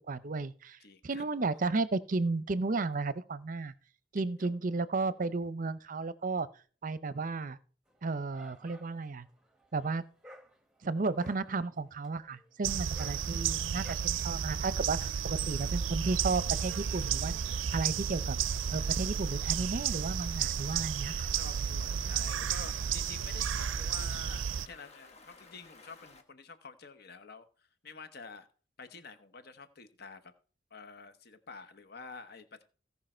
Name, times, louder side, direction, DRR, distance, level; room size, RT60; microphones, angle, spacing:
voice 1, 0.1-0.8 1.0-3.7 4.1-6.5 6.8-7.6 8.0-9.3 9.7-10.0 10.8-15.0 15.3-17.3 17.7-18.4 18.7-21.3, right 3 dB, 45° right, 0.6 m, -33 dB
voice 2, 0.8-1.3 4.1-4.5 15.0-15.2 20.7-28.5 28.8-30.3 30.7-32.6, left 4 dB, 55° left, 1.1 m, -49 dB
Dog, 7.9-13.9, right 1 dB, 5° right, 1.4 m, -56 dB
sound 1, 12.6-24.7, right 8 dB, 90° right, 0.4 m, -32 dB
Stream, 18.4-26.2, left 3 dB, 35° left, 1.4 m, -56 dB
16.5 x 5.6 x 4.4 m
head